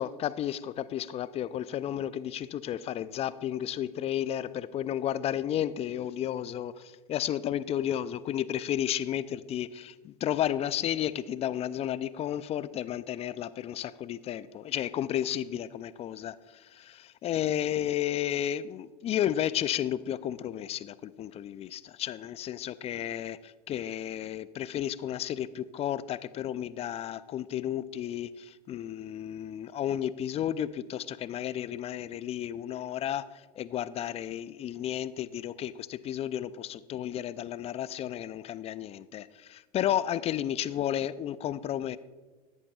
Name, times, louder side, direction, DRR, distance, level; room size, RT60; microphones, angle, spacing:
voice 1, 0.0-42.0, left 11 dB, 30° left, 16 dB, 0.4 m, -32 dB
14.5 x 10.5 x 2.4 m, 1.3 s
hypercardioid pair, 85°, 20 cm